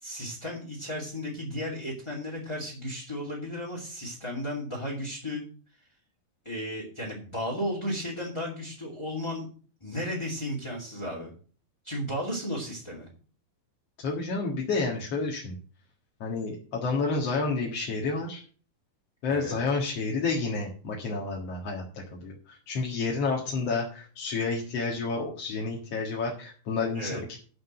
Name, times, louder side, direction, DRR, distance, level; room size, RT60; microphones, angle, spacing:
voice 1, 0.0-5.4 6.4-9.5 9.8-11.3 11.8-13.1 19.3-19.6 26.9-27.2, equal, 10° left, -4 dB, 2.4 m, -34 dB
voice 2, 14.0-15.5 16.2-18.4 19.2-21.8 22.1-27.4, left 4 dB, 50° left, -2 dB, 2.5 m, -30 dB
11.5 x 5.3 x 7.6 m, 0.41 s
omnidirectional pair, 4.0 m